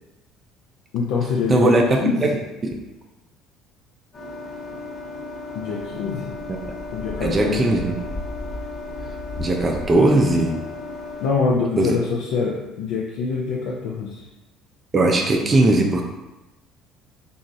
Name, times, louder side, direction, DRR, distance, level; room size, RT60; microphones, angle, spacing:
voice 1, 0.9-2.4 5.5-6.4 6.9-7.9 11.2-14.2, left 5 dB, 70° left, -3 dB, 0.3 m, -25 dB
voice 2, 1.5-1.8 2.2-2.3 7.2-8.0 9.4-10.6 11.8-12.0 14.9-16.0, right 2 dB, 30° right, 2 dB, 0.4 m, -18 dB
sound 1, 4.1-11.3, left 2 dB, 40° left, 1.1 m, -34 dB
2.9 x 2.3 x 2.6 m, 1.0 s
hypercardioid pair, 65°, 0 cm